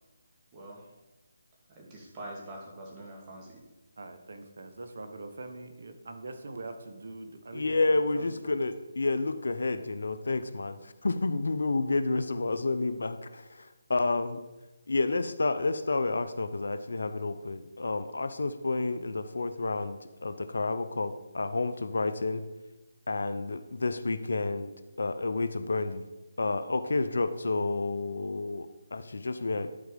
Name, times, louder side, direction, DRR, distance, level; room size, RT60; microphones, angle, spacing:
voice 1, 1.8-3.6, right 1 dB, 20° right, -3 dB, 2.3 m, -44 dB
voice 2, 4.0-8.6, right 2 dB, 65° right, 7 dB, 1.0 m, -43 dB
voice 3, 7.5-13.2 13.9-14.4 14.9-22.4 23.1-24.7 25.0-26.0 26.4-29.7, left 3 dB, 70° left, 12 dB, 0.7 m, -30 dB
11.0 x 4.6 x 5.2 m, 1.1 s
figure-of-eight pair, 155°, 0 cm